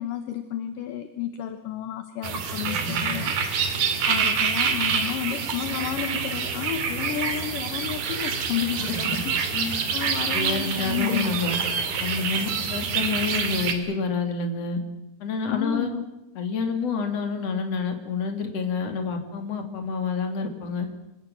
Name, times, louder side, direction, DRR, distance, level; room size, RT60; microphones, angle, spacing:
voice 1, 0.0-9.6 9.9-11.4 15.5-16.0, left 10 dB, 70° left, 9 dB, 2.6 m, -32 dB
sound 1, 2.2-13.7, right 6 dB, 65° right, 4.1 m, -27 dB
voice 2, 10.3-11.6 12.0-14.8 15.2-15.9 16.3-20.9, left 4 dB, 45° left, 6 dB, 3.5 m, -28 dB
26.0 x 17.0 x 9.1 m, 0.95 s
omnidirectional pair, 4.4 m